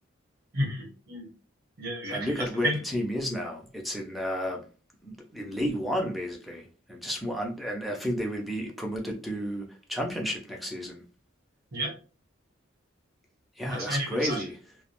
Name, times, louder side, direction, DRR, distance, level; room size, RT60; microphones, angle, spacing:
voice 1, 0.5-1.3 1.8-2.3 2.6-2.8 11.7-11.9 13.6-14.4, equal, 50° right, 1.0 m, -31 dB
voice 2, 2.1-4.6 5.0-11.0 13.6-14.6, equal, ahead, 0.4 m, -32 dB
2.4 x 2.1 x 2.9 m
head